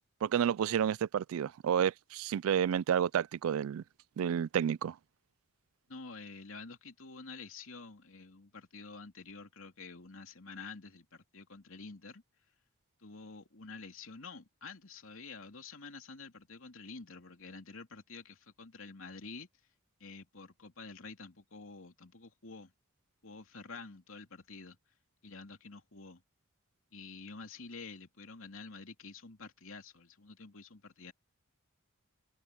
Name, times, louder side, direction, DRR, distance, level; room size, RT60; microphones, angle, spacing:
voice 1, 0.2-3.8 4.2-4.9, right 8 dB, 75° right, 0.3 m, -30 dB
voice 2, 5.9-12.2 13.0-19.5 20.0-22.7 23.2-24.8 25.2-26.2 26.9-31.1, left 4 dB, 70° left, 2.8 m, -49 dB
head